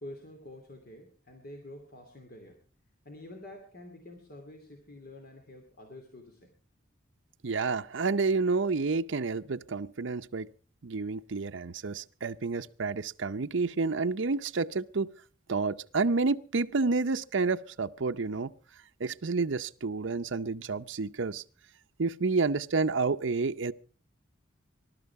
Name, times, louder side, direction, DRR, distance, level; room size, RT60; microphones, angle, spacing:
voice 1, 0.0-2.6 3.0-6.5, left 1 dB, 50° left, 2.7 m, -48 dB
voice 2, 7.4-10.5 10.8-15.1 15.5-18.5 19.0-21.4 22.0-23.7, right 4 dB, 65° right, 0.7 m, -29 dB
20.0 x 12.0 x 4.7 m
head